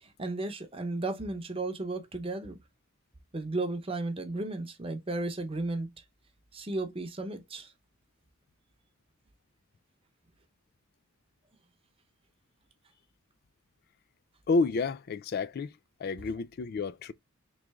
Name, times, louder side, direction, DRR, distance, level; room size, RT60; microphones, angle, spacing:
voice 1, 0.0-2.6 3.3-5.9 6.5-7.7, right 2 dB, 25° right, 0.8 m, -34 dB
voice 2, 14.5-15.7 16.0-17.1, left 3 dB, 50° left, 0.3 m, -30 dB
3.7 x 3.2 x 3.4 m
head